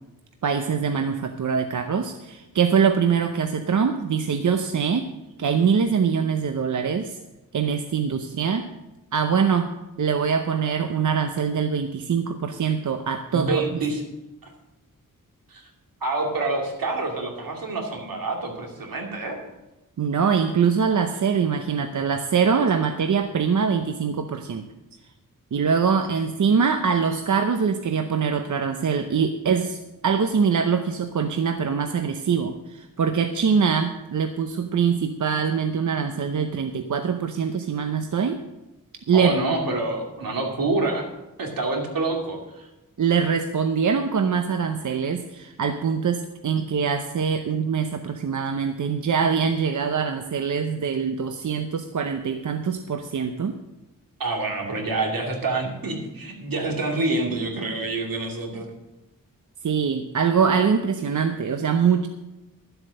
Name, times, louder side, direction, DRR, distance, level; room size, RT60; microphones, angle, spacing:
voice 1, 0.4-5.1 5.4-7.2 7.5-8.7 9.1-9.7 10.0-13.8 20.0-24.7 25.5-38.4 39.1-39.3 43.0-53.6 59.6-62.1, right 6 dB, 60° right, 7 dB, 0.8 m, -23 dB
voice 2, 13.3-14.0 14.4-14.5 15.5-15.7 16.0-19.4 39.1-41.1 41.4-42.7 54.2-58.7, right 2 dB, 80° right, 1 dB, 2.5 m, -27 dB
12.5 x 7.9 x 6.4 m, 1.0 s
wide cardioid pair, 115°, 34 cm